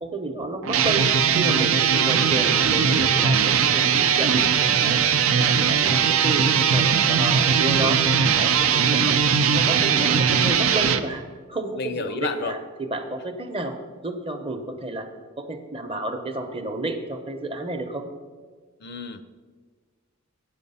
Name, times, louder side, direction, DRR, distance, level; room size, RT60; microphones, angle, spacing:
voice 1, 0.0-1.1 1.3-5.0 5.4-8.0 8.4-9.2 9.5-11.2 11.5-13.7 14.0-15.1 15.4-18.1, right 2 dB, 25° right, 6 dB, 0.7 m, -31 dB
sound 1, 0.6-11.0, right 7 dB, 75° right, 0.5 m, -20 dB
voice 2, 11.7-12.6 18.8-19.2, left 5 dB, 50° left, 12 dB, 0.5 m, -30 dB
8.4 x 7.2 x 5.5 m, 1.5 s
head